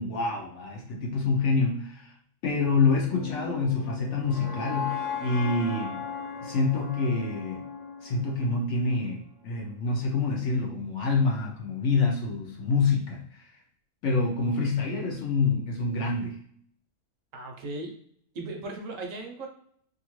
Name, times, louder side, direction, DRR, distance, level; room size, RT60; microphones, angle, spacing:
voice 1, 0.0-2.1 2.4-6.0 6.4-7.6 8.0-13.5 14.0-16.4, left 3 dB, 60° left, -1 dB, 0.8 m, -27 dB
sound 1, 3.0-9.1, left 5 dB, 35° left, 0.6 m, -37 dB
voice 2, 17.3-17.9 18.3-19.5, right 2 dB, 65° right, 2 dB, 0.9 m, -37 dB
2.7 x 2.4 x 3.0 m, 0.65 s
omnidirectional pair, 1.6 m